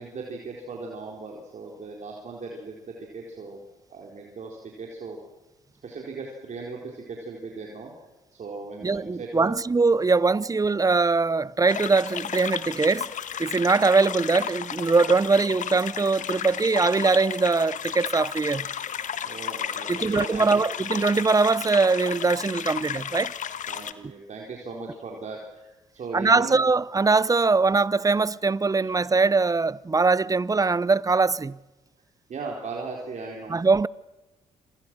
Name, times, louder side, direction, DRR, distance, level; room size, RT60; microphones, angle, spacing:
voice 1, 0.0-3.6 3.9-5.2 5.8-7.9 8.3-9.6 19.2-20.6 23.7-26.7 28.8-28.9 32.3-33.6, right 4 dB, 50° right, 4.2 m, -38 dB
voice 2, 8.8-13.1 13.4-18.7 19.9-23.3 26.1-31.6 33.5-33.9, right 4 dB, 20° right, 0.7 m, -22 dB
babble brook, 11.7-23.9, left 8 dB, 55° left, 1.5 m, -33 dB
27.0 x 26.5 x 6.2 m
hypercardioid pair, 45°, 16 cm